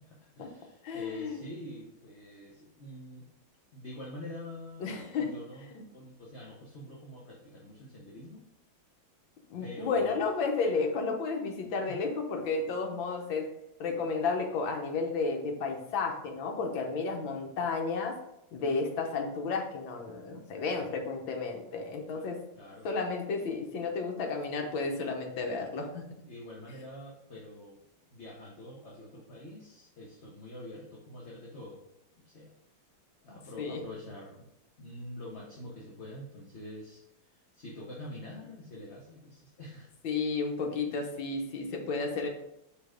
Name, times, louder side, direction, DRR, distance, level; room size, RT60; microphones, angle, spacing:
voice 1, 0.0-3.3 3.7-4.9 5.2-8.4 9.6-10.2 11.9-12.0 22.1-22.3 22.5-22.9 26.2-27.8 28.1-31.8 32.2-32.5 33.2-34.5 34.8-39.9, left 1 dB, 45° left, -3 dB, 1.0 m, -46 dB
voice 2, 0.8-1.4 4.8-5.3 5.7-5.8 9.5-13.5 13.8-18.2 18.5-22.4 22.8-26.1 33.6-33.8 40.0-42.3, left 4 dB, 75° left, 3 dB, 1.7 m, -32 dB
5.2 x 4.3 x 5.0 m, 0.81 s
omnidirectional pair, 2.2 m